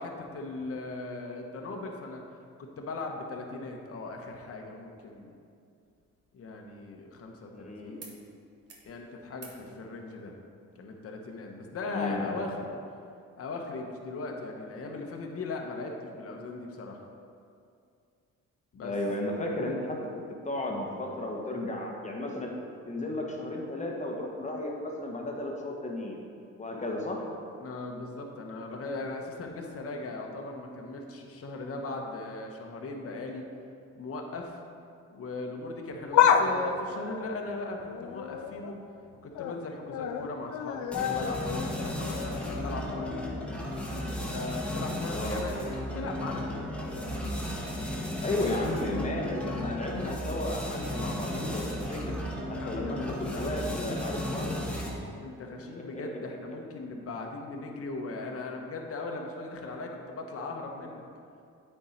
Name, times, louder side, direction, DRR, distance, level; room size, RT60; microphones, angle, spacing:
voice 1, 0.0-2.2 2.6-5.4 6.3-8.2 8.8-10.4 10.8-12.8 13.3-17.0 18.7-18.9 27.6-33.5 33.9-34.6 35.1-38.8 39.2-43.4 44.3-45.6 45.9-46.7 52.5-54.1 55.2-61.0, left 3 dB, 50° left, 2 dB, 1.0 m, -38 dB
sound 1, 5.8-7.6 8.0-8.2 8.5-8.9 9.3-9.6 11.0-11.1, right 4 dB, 50° right, 1.2 m, -53 dB
voice 2, 7.5-8.0 11.9-12.2 18.8-20.0 20.4-22.5 22.9-26.2 26.6-27.2 45.1-45.8 48.2-52.1 52.7-54.7 55.7-55.8, left 1 dB, 25° left, -1 dB, 1.3 m, -33 dB
sound 2, 35.9-38.7 39.1-39.6 39.9-43.8 44.2-44.3 45.3-45.4, left 8 dB, 70° left, 0.5 m, -30 dB
sound 3, 40.9-55.1, equal, 5° left, 1.6 m, -35 dB
8.7 x 4.6 x 4.4 m, 2.4 s
cardioid pair, 90°, 30 cm